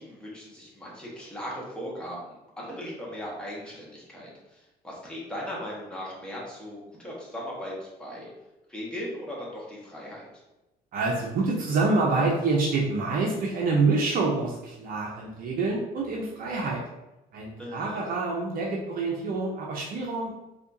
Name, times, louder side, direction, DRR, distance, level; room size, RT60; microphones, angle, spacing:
voice 1, 0.0-8.3 8.7-10.3 17.6-18.1, equal, 5° left, -5 dB, 1.3 m, -38 dB
voice 2, 10.9-16.8 17.3-20.3, right 3 dB, 60° right, -2 dB, 0.7 m, -27 dB
4.2 x 2.8 x 2.7 m, 0.97 s
cardioid pair, 110°, 17 cm